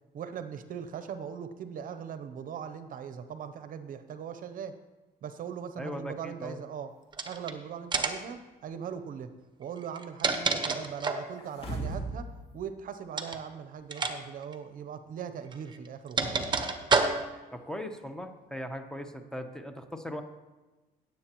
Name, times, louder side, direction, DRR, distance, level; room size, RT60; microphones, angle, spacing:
voice 1, 0.1-4.8 5.2-6.9 7.2-9.3 9.6-16.4, right 7 dB, 55° right, 10 dB, 0.7 m, -40 dB
voice 2, 5.8-6.6 17.5-20.2, left 1 dB, 5° left, 6 dB, 0.9 m, -39 dB
sound 1, 7.1-7.5 7.9-8.3 9.8-11.3 13.1-13.4 13.9-14.2 14.4-14.5 15.5-17.5, right 4 dB, 25° right, 0.9 m, -29 dB
sound 2, 11.4-12.3 12.6-12.7, right 2 dB, 35° left, 2.2 m, -35 dB
16.5 x 7.7 x 3.0 m, 1.2 s
cardioid pair, 110°, 17 cm